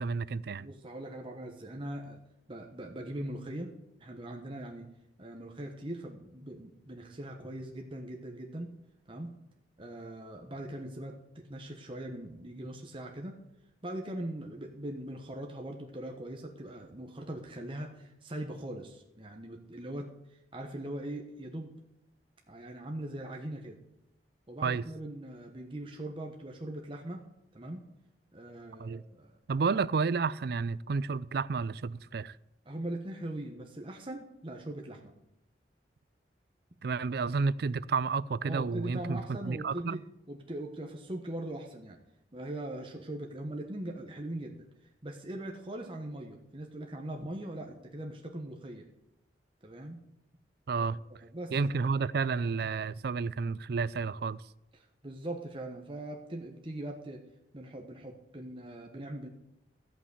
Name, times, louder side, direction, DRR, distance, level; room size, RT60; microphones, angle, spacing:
voice 1, 0.0-0.7 24.6-24.9 28.8-29.0 29.5-32.4 36.8-40.0 50.7-51.0 51.5-54.4, right 4 dB, 60° right, 0.4 m, -31 dB
voice 2, 0.6-2.2 2.5-4.9 5.2-8.7 9.1-9.3 9.8-13.4 13.8-20.1 20.5-21.7 22.5-23.8 24.5-27.2 27.5-27.9 28.3-29.4 32.6-35.1 38.4-42.0 42.3-44.7 45.0-48.9 49.6-50.0 51.3-51.8 55.0-57.2 57.5-59.3, right 1 dB, 30° right, 1.2 m, -41 dB
13.5 x 6.0 x 8.1 m
head